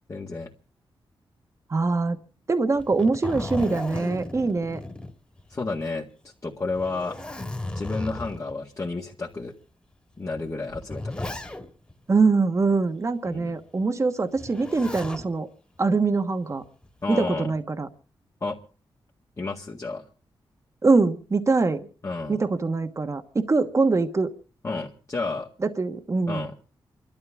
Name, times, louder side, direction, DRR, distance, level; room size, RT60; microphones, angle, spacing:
voice 1, 0.1-0.5 5.5-6.1 6.4-7.2 7.8-9.5 10.2-11.4 13.3-13.5 17.0-17.5 18.4-18.6 19.4-20.0 22.0-22.4 24.6-25.5 26.3-26.5, left 3 dB, 35° left, -2 dB, 2.0 m, -31 dB
voice 2, 1.7-2.2 2.5-4.8 12.1-15.5 15.8-16.6 17.1-17.9 20.8-21.9 22.3-24.3 25.6-26.5, right 3 dB, 35° right, 8 dB, 1.3 m, -23 dB
Zipper (clothing), 2.7-5.7 6.0-6.1 6.7-8.5 9.3-9.4 10.4-11.9 14.4-15.3 16.6-17.1, left 1 dB, 10° left, 2.1 m, -35 dB
29.0 x 12.5 x 3.6 m, 0.37 s
wide cardioid pair, 95°, 9 cm